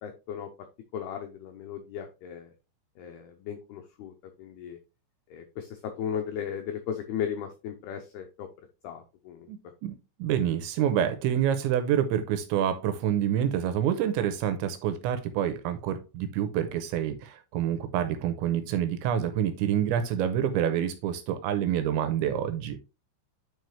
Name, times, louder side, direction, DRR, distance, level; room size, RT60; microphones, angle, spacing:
voice 1, 0.0-0.5 0.9-2.5 3.0-4.1 4.4-4.8 5.3-8.5 8.8-9.5, left 8 dB, 85° left, 4 dB, 2.2 m, -36 dB
voice 2, 9.5-22.8, right 10 dB, 85° right, 9 dB, 2.8 m, -27 dB
9.4 x 4.8 x 3.2 m, 0.28 s
omnidirectional pair, 5.7 m